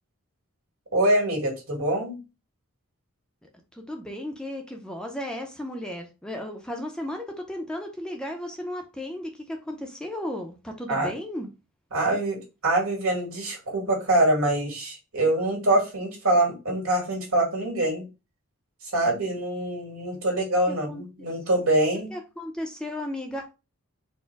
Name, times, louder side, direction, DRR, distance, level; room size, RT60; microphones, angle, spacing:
voice 1, 0.9-2.2 10.9-11.1 11.9-18.0 18.8-22.1, right 1 dB, 80° right, 1.9 m, -24 dB
voice 2, 3.7-11.5 20.7-21.3 22.1-23.4, left 1 dB, 5° left, 0.5 m, -35 dB
4.3 x 2.1 x 4.5 m
head